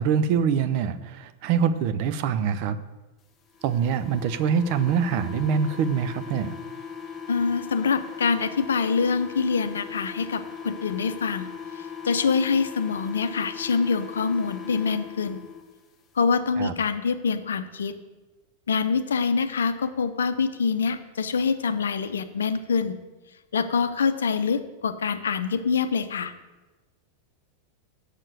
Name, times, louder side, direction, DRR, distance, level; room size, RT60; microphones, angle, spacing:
voice 1, 0.0-2.8 3.6-6.6 16.6-16.7, right 7 dB, 45° right, 12 dB, 0.6 m, -24 dB
sound 1, 3.5-15.6, left 7 dB, 20° left, 1.1 m, -39 dB
voice 2, 7.3-11.5 12.0-15.4 16.1-18.0 18.7-23.0 23.5-26.3, left 5 dB, 65° left, 10 dB, 0.6 m, -25 dB
7.4 x 6.6 x 7.8 m, 1.2 s
figure-of-eight pair, 90°, 0 cm